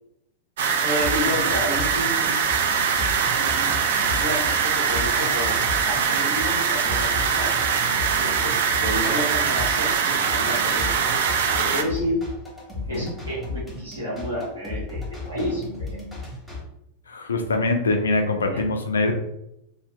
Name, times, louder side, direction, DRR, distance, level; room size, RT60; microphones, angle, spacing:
sound 1, 0.6-11.8, right 6 dB, 60° right, 0.3 m, -22 dB
voice 1, 0.8-2.4 3.4-3.7 4.2-5.6 5.8-7.7 8.2-10.9 11.2-12.2 12.9-15.8 18.5-18.6, equal, 80° right, -7 dB, 1.3 m, -30 dB
sound 2, 1.0-16.6, left 2 dB, 5° left, 1.0 m, -35 dB
voice 2, 17.1-19.1, left 2 dB, 70° left, 5 dB, 0.4 m, -23 dB
2.6 x 2.4 x 2.2 m, 0.83 s
figure-of-eight pair, 90°, 0 cm